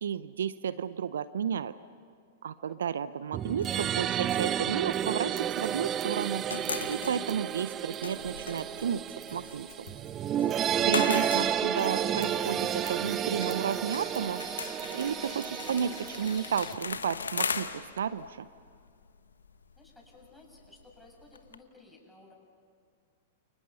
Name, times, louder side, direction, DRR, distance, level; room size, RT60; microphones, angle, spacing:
voice 1, 0.0-1.7 2.4-6.4 6.9-9.0 9.3-9.9 10.8-14.4 14.9-18.5, right 8 dB, 70° right, 16 dB, 0.7 m, -32 dB
sound 1, 3.3-16.8, right 10 dB, 30° right, 0.6 m, -31 dB
sound 2, 3.6-5.9 6.1-21.6, left 5 dB, 80° left, 1.2 m, -40 dB
sound 3, 10.8-16.7, left 10 dB, 50° left, 2.8 m, -49 dB
voice 2, 19.8-22.3, left 2 dB, 5° left, -1 dB, 7.7 m, -56 dB
30.0 x 29.5 x 5.6 m, 2.2 s
hypercardioid pair, 105°, 0 cm